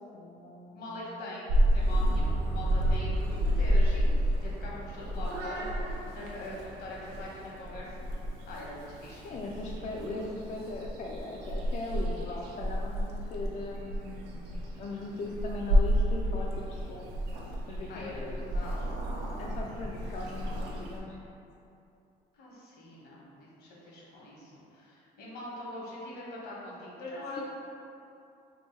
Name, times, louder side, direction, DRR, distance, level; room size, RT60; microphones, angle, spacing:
voice 1, 0.1-1.1 9.2-14.5 14.8-17.1 17.7-18.7 19.4-21.2 27.1-27.4, left 2 dB, 45° left, -2 dB, 0.4 m, -39 dB
voice 2, 0.7-4.1 4.4-8.1 8.5-9.4 17.9-19.0 22.3-27.4, left 1 dB, 75° left, -5 dB, 1.2 m, -42 dB
Purr / Meow, 1.5-21.0, equal, 85° right, 0.6 m, -30 dB
2.9 x 2.6 x 4.4 m, 2.7 s
cardioid pair, 110°, 17 cm